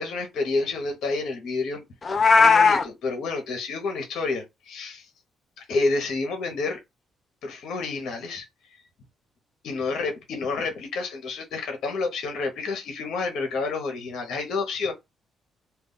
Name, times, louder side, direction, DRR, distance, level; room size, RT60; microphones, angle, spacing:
voice 1, 0.0-1.8 2.2-5.1 5.6-6.8 7.4-8.5 9.6-14.9, left 3 dB, 75° left, 0.7 m, -29 dB
Meow, 2.0-2.8, left 4 dB, 35° left, 0.4 m, -17 dB
2.2 x 2.2 x 3.6 m
cardioid pair, 90°, 0 cm